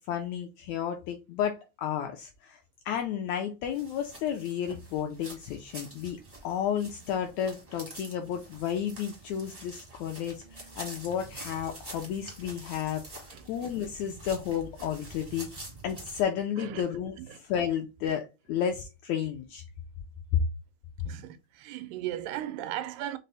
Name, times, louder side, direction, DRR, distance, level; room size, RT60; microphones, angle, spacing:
voice 1, 0.1-2.6 2.8-13.0 13.5-15.5 15.8-19.6 20.3-20.4, left 9 dB, 85° left, 1.6 m, -32 dB
sound 1, 3.7-16.2, right 2 dB, 50° right, 0.4 m, -47 dB
voice 2, 21.1-23.2, right 12 dB, 90° right, 2.2 m, -36 dB
5.3 x 2.0 x 3.9 m
omnidirectional pair, 3.7 m